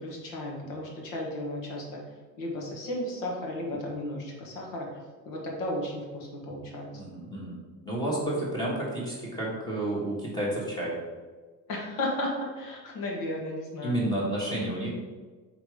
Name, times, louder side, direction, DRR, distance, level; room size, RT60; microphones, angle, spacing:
voice 1, 0.0-2.0 2.4-4.9 5.3-6.9 8.0-8.3 11.7-14.0, left 1 dB, 70° left, -1 dB, 1.7 m, -34 dB
voice 2, 6.9-7.6 7.8-11.0 13.8-14.9, right 1 dB, 10° left, -5 dB, 1.4 m, -30 dB
5.4 x 3.7 x 4.9 m, 1.3 s
cardioid pair, 175°, 34 cm